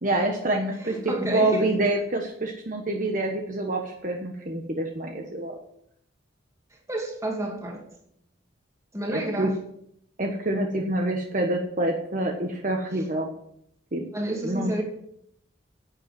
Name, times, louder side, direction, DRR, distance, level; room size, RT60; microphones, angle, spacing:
voice 1, 0.0-5.6 9.1-9.5 10.2-13.3 13.9-14.0 14.4-14.7, right 2 dB, 40° right, 2 dB, 1.3 m, -27 dB
voice 2, 0.8-1.7 6.9-7.8 8.9-9.6 12.9-13.0 14.1-14.8, right 1 dB, 15° right, 0 dB, 2.6 m, -30 dB
11.0 x 8.1 x 7.7 m, 0.74 s
head